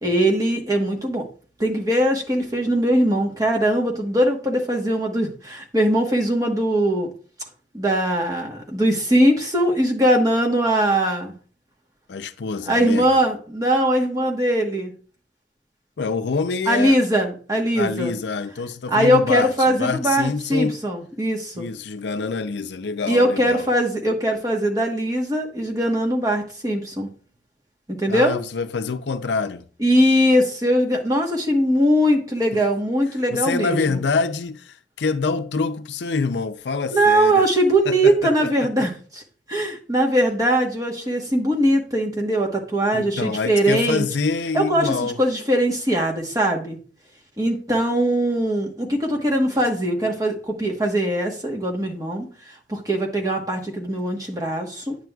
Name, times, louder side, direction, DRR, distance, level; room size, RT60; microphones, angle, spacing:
voice 1, 0.0-1.2 1.6-7.1 7.7-11.3 12.7-14.9 16.7-18.1 18.9-21.7 23.1-27.1 28.0-28.4 29.8-34.0 36.9-39.2 39.5-44.0 44.5-46.8 47.4-52.3 52.7-55.0, right 1 dB, 20° right, 1.2 m, -21 dB
voice 2, 12.1-13.2 16.0-17.0 17.7-20.8 21.6-23.7 28.1-29.6 32.5-32.6 33.3-37.4 37.9-38.9 42.9-45.2, left 4 dB, 75° left, 0.5 m, -26 dB
9.2 x 6.7 x 2.3 m
head